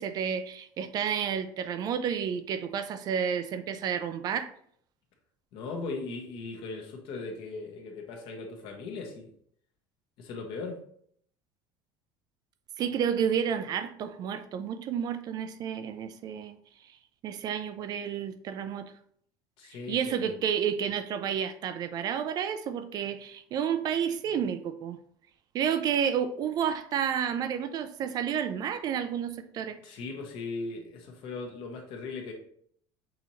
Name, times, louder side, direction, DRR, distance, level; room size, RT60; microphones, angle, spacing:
voice 1, 0.0-4.5 12.8-16.5 17.2-18.9 19.9-25.0 25.5-29.8, right 8 dB, 40° right, 0.4 m, -30 dB
voice 2, 5.5-9.3 10.2-10.8 19.6-20.4 29.8-32.3, left 3 dB, 55° left, 1.2 m, -38 dB
6.2 x 2.8 x 3.0 m
cardioid pair, 145°, 10 cm